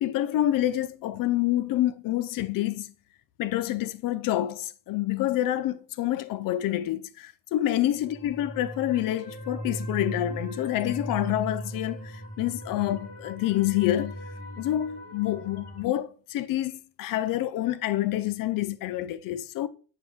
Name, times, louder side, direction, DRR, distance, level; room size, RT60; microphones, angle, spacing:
voice 1, 0.0-2.9 3.4-14.2 14.6-19.7, left 13 dB, 50° left, 0.6 m, -27 dB
sound 1, 7.9-15.8, equal, 35° left, 2.4 m, -38 dB
8.6 x 4.7 x 3.5 m
cardioid pair, 160°, 43 cm